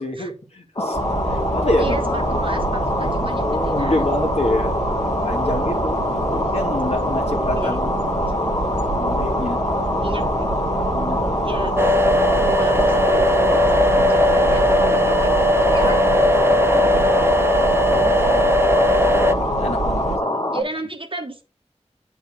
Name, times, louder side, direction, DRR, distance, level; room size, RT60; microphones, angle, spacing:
voice 1, 0.0-2.4 3.2-6.0 6.3-8.4 8.9-9.6 10.9-11.5 15.8-15.9 16.7-18.6 19.6-20.7, left 1 dB, 65° left, 2.1 m, -28 dB
sound 1, 0.8-20.6, left 1 dB, 40° left, 1.3 m, -24 dB
sound 2, 0.9-20.2, right 3 dB, 85° right, 1.0 m, -28 dB
voice 2, 1.8-4.0 6.3-6.4 7.6-7.8 10.0-10.6 11.4-11.8 12.4-15.3 15.7-16.0 16.8-16.9 20.5-21.4, right 2 dB, 50° right, 1.2 m, -32 dB
sound 3, 11.8-19.3, left 1 dB, 20° right, 0.6 m, -18 dB
9.2 x 4.1 x 3.6 m
wide cardioid pair, 45°, 12 cm